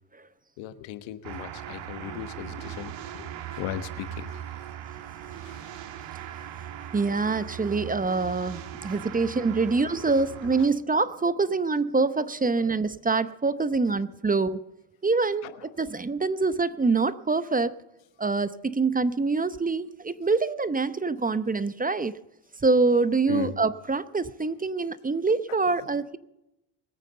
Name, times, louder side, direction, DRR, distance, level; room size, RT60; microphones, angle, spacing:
voice 1, 0.6-4.4 5.4-5.7 6.8-6.9 8.8-9.0 9.8-10.1 12.6-12.7 15.4-15.6 23.3-23.6, left 12 dB, 85° left, 1.3 m, -38 dB
sound 1, 1.2-10.7, right 10 dB, 70° right, 1.6 m, -39 dB
voice 2, 6.9-14.6 15.0-17.7 18.2-22.1 22.6-26.2, right 3 dB, 20° right, 0.8 m, -25 dB
21.0 x 9.0 x 6.8 m
supercardioid pair, 70°, 46 cm